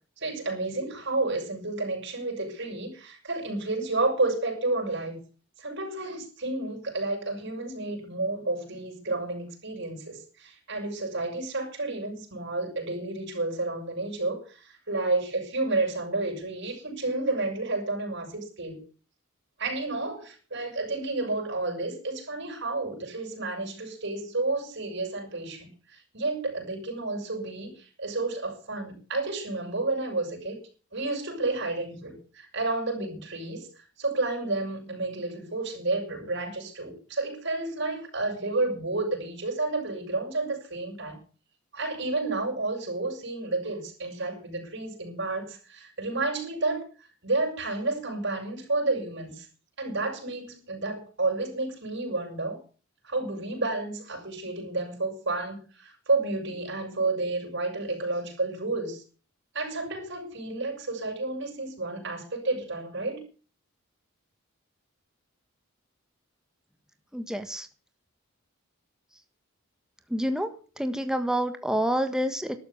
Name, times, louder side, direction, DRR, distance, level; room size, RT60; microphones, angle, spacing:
voice 1, 0.2-5.2 5.6-18.8 19.6-30.6 30.9-41.2 41.7-46.8 47.2-49.5 49.8-52.6 53.0-59.0 59.5-63.2, right 2 dB, 60° right, 1 dB, 6.7 m, -31 dB
voice 2, 67.1-67.7 70.1-70.5 70.8-72.6, equal, 5° right, 8 dB, 1.4 m, -28 dB
12.5 x 12.5 x 7.2 m, 0.38 s
head